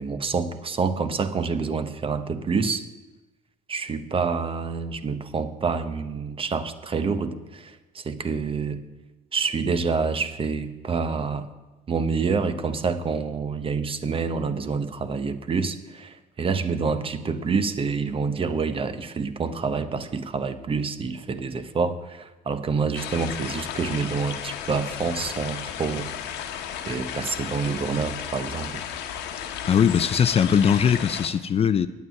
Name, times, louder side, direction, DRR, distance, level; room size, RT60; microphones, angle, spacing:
voice 1, 0.0-2.8 3.7-8.8 9.3-11.5 11.9-26.1 26.9-28.8, right 5 dB, 35° right, 11 dB, 1.0 m, -27 dB
sound 1, 22.9-31.3, left 9 dB, 85° left, 1.1 m, -34 dB
voice 2, 29.7-31.9, left 7 dB, 35° left, 13 dB, 0.5 m, -20 dB
9.4 x 8.8 x 9.3 m, 1.1 s
cardioid pair, 110°, 17 cm